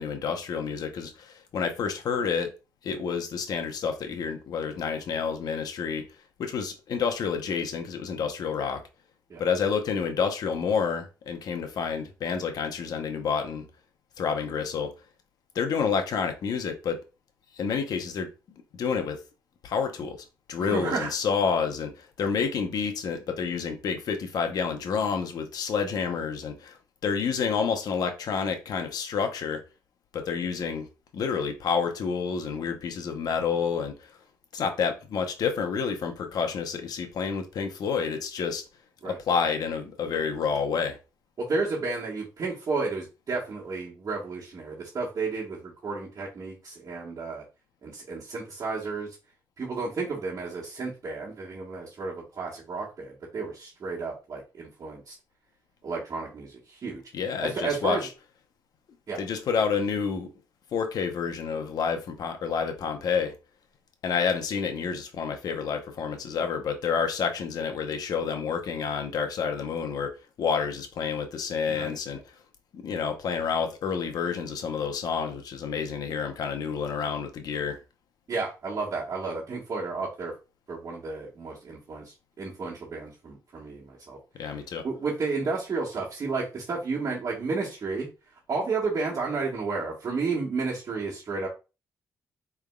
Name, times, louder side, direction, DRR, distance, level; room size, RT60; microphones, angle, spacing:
voice 1, 0.0-2.5 2.8-6.1 6.4-8.8 9.4-13.7 14.2-14.9 15.5-17.0 17.6-18.3 18.7-19.2 19.6-26.8 27.0-29.6 30.1-30.9 31.1-34.1 34.5-38.6 39.0-41.0 57.1-58.0 59.2-60.3 60.7-63.3 64.0-72.2 72.7-77.8 84.4-84.8, left 6 dB, 70° left, 0.9 m, -29 dB
voice 2, 20.6-21.1 39.0-39.2 41.4-47.4 47.8-49.2 49.6-55.2 55.8-57.0 57.4-58.0 59.1-59.2 71.7-72.2 78.3-80.3 80.7-84.2 84.8-88.1 88.5-91.5, right 4 dB, 50° right, 1.6 m, -32 dB
4.8 x 3.5 x 2.3 m
cardioid pair, 90°, 7 cm